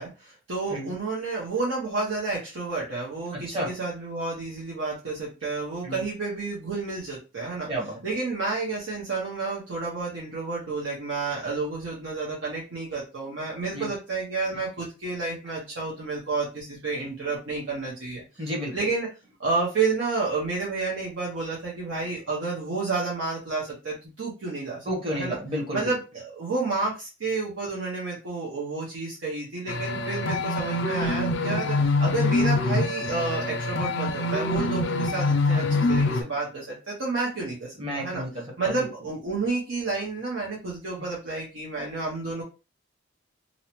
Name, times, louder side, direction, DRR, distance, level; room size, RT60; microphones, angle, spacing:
voice 1, 0.0-7.7 8.0-19.1 19.4-25.4 25.7-38.2 38.6-42.4, right 3 dB, 80° right, -5 dB, 0.8 m, -30 dB
voice 2, 7.7-8.0 13.7-13.9 18.4-18.7 24.8-25.9 37.8-38.9, equal, 30° right, -1 dB, 0.8 m, -31 dB
sound 1, 29.7-36.2, left 2 dB, 65° left, 0.4 m, -25 dB
2.6 x 2.1 x 2.9 m, 0.30 s
head